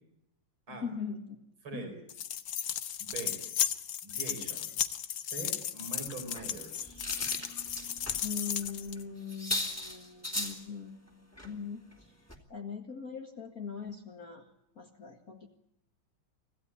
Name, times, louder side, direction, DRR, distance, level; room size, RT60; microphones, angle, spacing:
voice 1, 0.7-1.2 1.7-1.9 8.2-11.8 12.5-14.5 14.8-15.5, left 6 dB, 45° left, 3 dB, 2.2 m, -40 dB
voice 2, 1.6-2.0 3.0-3.4 4.0-4.7 5.3-7.0, right 3 dB, 85° right, 6 dB, 5.5 m, -43 dB
sound 1, 2.1-9.0, left 9 dB, 65° left, 1.7 m, -35 dB
sound 2, 6.3-8.2 8.6-8.7 9.0-9.1 9.3-10.6 11.4-11.5 11.9-12.0 12.3-12.4, left 1 dB, 5° left, 2.9 m, -37 dB
26.0 x 16.0 x 10.0 m, 0.82 s
omnidirectional pair, 2.3 m